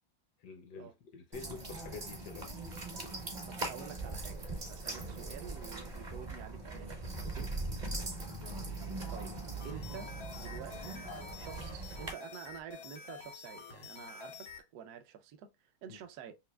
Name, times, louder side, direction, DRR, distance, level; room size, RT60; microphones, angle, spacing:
voice 1, 0.4-2.5 7.8-8.1 15.9-16.0, left 5 dB, 70° left, 1.0 m, -48 dB
sound 1, 1.3-12.1, right 2 dB, 45° right, 0.5 m, -41 dB
voice 2, 3.4-4.4 4.7-7.5 9.1-9.3 9.6-11.1 11.4-15.5 15.8-16.3, right 8 dB, 70° right, 0.9 m, -49 dB
sound 2, 9.6-14.6, left 5 dB, 85° left, 0.5 m, -49 dB
5.7 x 2.4 x 2.2 m
omnidirectional pair, 2.3 m